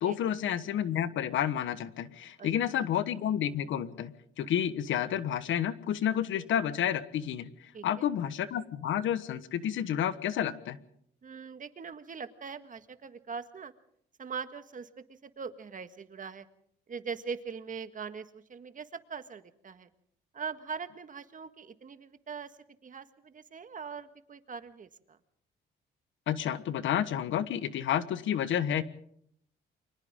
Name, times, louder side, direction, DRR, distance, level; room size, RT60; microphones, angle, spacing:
voice 1, 0.0-10.8 26.3-28.8, left 10 dB, 75° left, 14 dB, 1.4 m, -30 dB
voice 2, 7.7-8.1 11.2-13.7 14.2-16.5 16.9-19.9 20.3-25.2, right 6 dB, 40° right, 10 dB, 1.7 m, -41 dB
29.0 x 24.5 x 3.8 m, 0.69 s
cardioid pair, 90°, 20 cm